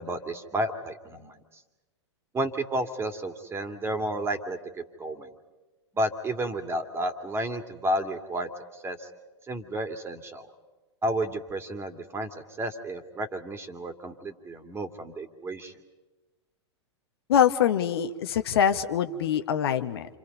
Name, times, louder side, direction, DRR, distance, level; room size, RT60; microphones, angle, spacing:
voice 1, 0.0-1.4 2.3-5.3 5.9-8.5 8.8-9.1 9.5-10.5 11.0-12.3 12.6-15.7, right 1 dB, 15° right, 7 dB, 2.4 m, -31 dB
voice 2, 17.3-20.2, left 9 dB, 60° left, 8 dB, 1.3 m, -24 dB
29.5 x 27.0 x 5.4 m, 1.1 s
figure-of-eight pair, 100°, 15 cm